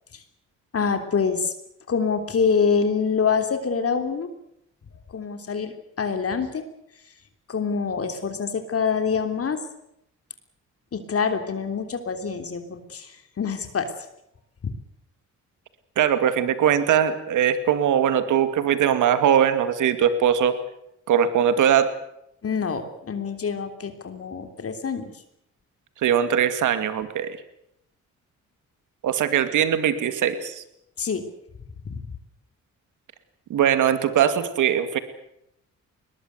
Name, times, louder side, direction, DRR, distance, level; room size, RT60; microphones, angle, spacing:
voice 1, 0.7-1.5 1.9-4.3 5.1-6.6 7.5-9.6 10.9-13.9 14.6-14.7 22.4-25.1 31.0-31.2, left 5 dB, 50° left, 7 dB, 3.4 m, -25 dB
voice 2, 16.0-20.6 21.1-21.9 26.0-27.4 29.0-30.6 33.5-35.0, right 9 dB, 85° right, 11 dB, 2.4 m, -21 dB
21.5 x 20.0 x 8.2 m, 0.78 s
cardioid pair, 80°, 30 cm